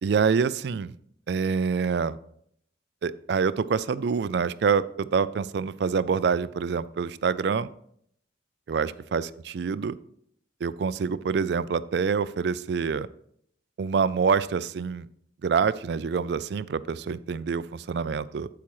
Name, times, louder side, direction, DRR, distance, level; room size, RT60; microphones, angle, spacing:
voice 1, 0.0-0.9 1.3-2.2 3.0-7.7 8.7-10.0 10.6-13.1 13.8-15.1 15.4-18.5, right 6 dB, 60° right, 17 dB, 0.3 m, -26 dB
8.6 x 8.3 x 3.1 m, 0.68 s
head